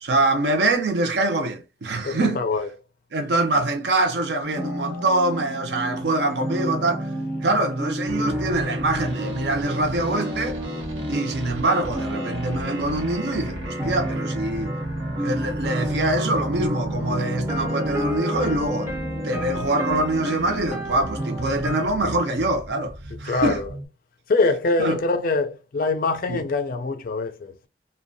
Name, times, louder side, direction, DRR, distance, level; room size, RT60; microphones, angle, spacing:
voice 1, 0.0-2.4 3.1-7.1 7.4-10.6 11.1-14.7 15.2-18.9 19.2-23.6 24.8-25.0 26.3-26.4, right 2 dB, 65° right, 0.6 m, -24 dB
voice 2, 2.0-2.7 23.3-23.7 24.3-27.5, left 3 dB, 50° left, 0.4 m, -24 dB
sound 1, 4.4-21.9, equal, 15° right, 0.6 m, -30 dB
sound 2, 8.1-23.9, right 1 dB, 85° right, 1.0 m, -36 dB
2.6 x 2.2 x 2.6 m
head